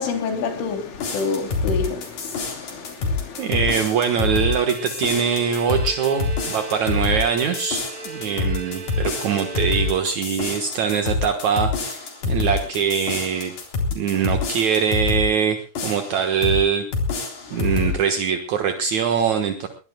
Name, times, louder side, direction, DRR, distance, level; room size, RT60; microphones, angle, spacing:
voice 1, 0.0-3.8 8.3-8.5 14.1-14.3 17.5-17.9, left 4 dB, 90° left, 5.7 m, -30 dB
sound 1, 0.9-15.3 15.7-16.6 16.9-18.0, left 3 dB, 45° left, 4.9 m, -26 dB
Bowed string instrument, 3.4-10.4, right 5 dB, 45° right, 6.3 m, -38 dB
voice 2, 3.4-13.5 13.9-16.9 17.5-19.7, right 7 dB, 65° right, 1.8 m, -23 dB
22.5 x 20.5 x 2.3 m
omnidirectional pair, 5.4 m